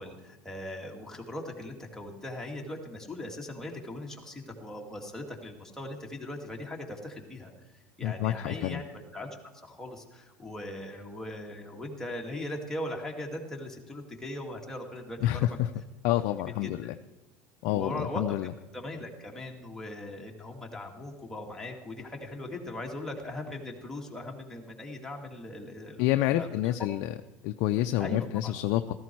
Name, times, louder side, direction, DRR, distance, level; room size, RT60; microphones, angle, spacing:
voice 1, 0.0-7.5 8.0-9.3 9.6-15.5 16.6-16.7 17.7-26.8 28.0-28.5, left 1 dB, 5° left, -1 dB, 2.3 m, -39 dB
voice 2, 8.0-8.8 15.2-15.7 16.0-16.9 17.6-18.5 26.0-27.1 27.4-28.9, left 14 dB, 65° left, 8 dB, 0.5 m, -28 dB
14.0 x 13.5 x 4.6 m, 1.1 s
supercardioid pair, 115°, 8 cm